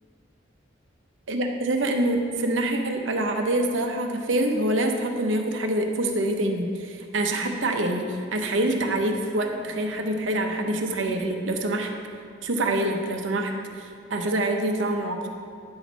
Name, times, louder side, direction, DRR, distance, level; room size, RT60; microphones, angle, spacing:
voice 1, 1.3-11.9 12.4-15.3, right 1 dB, 70° right, 3 dB, 0.8 m, -26 dB
9.6 x 6.1 x 4.1 m, 2.2 s
head